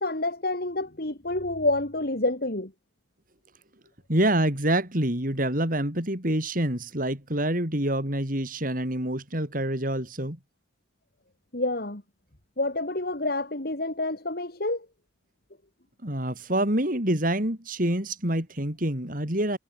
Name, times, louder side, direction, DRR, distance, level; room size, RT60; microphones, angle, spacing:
voice 1, 0.0-2.7 11.5-12.0 12.6-14.9, left 2 dB, 55° left, 2.8 m, -28 dB
voice 2, 4.1-10.4 16.0-19.6, right 1 dB, 50° right, 5.4 m, -26 dB
head